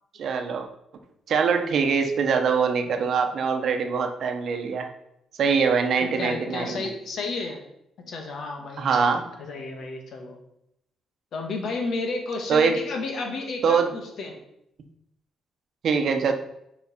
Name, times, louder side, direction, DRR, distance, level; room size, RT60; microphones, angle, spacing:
voice 1, 0.2-0.7 1.3-4.9 5.4-6.8 8.8-9.2 12.5-12.8 13.6-13.9 15.8-16.3, right 5 dB, 60° right, 5 dB, 1.0 m, -23 dB
voice 2, 6.0-7.6 8.0-10.4 11.3-14.3, left 3 dB, 65° left, 3 dB, 1.6 m, -32 dB
6.5 x 4.8 x 4.3 m, 0.80 s
cardioid pair, 90°, 0 cm